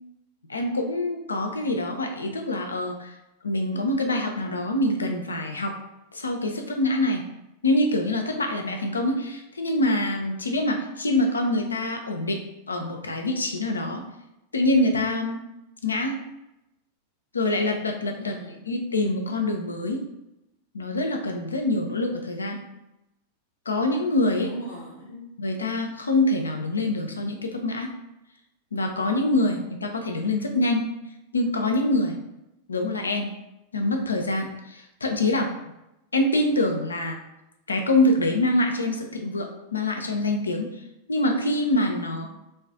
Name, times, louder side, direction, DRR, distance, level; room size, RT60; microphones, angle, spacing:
voice 1, 0.5-3.1 3.4-5.7 6.1-7.2 7.6-12.4 12.7-14.0 14.5-15.4 15.8-16.2 17.3-18.3 18.7-20.0 20.7-22.6 23.7-24.5 25.4-27.9 28.7-30.8 31.3-32.2 32.7-33.3 33.7-35.5 36.1-37.2 37.7-40.7 41.1-42.2, left 1 dB, 75° left, 3 dB, 0.3 m, -25 dB
voice 2, 18.2-19.0 24.4-25.3 42.2-42.3, left 1 dB, 90° right, -10 dB, 1.0 m, -40 dB
2.4 x 2.3 x 2.3 m, 0.90 s
figure-of-eight pair, 90°, 0 cm